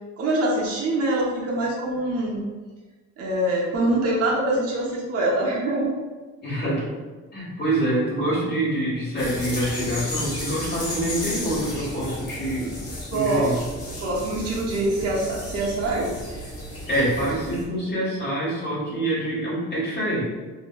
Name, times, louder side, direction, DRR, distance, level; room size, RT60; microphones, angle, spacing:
voice 1, 0.2-2.4 3.2-6.0 13.1-13.6 14.0-16.1, right 1 dB, 55° right, -4 dB, 0.7 m, -24 dB
voice 2, 6.4-6.9 7.3-13.5 16.9-20.2, right 1 dB, 35° left, -6 dB, 1.3 m, -26 dB
sound 1, 9.2-17.6, left 1 dB, 50° left, 1.0 m, -34 dB
2.9 x 2.6 x 2.2 m, 1.3 s
cardioid pair, 90°, 30 cm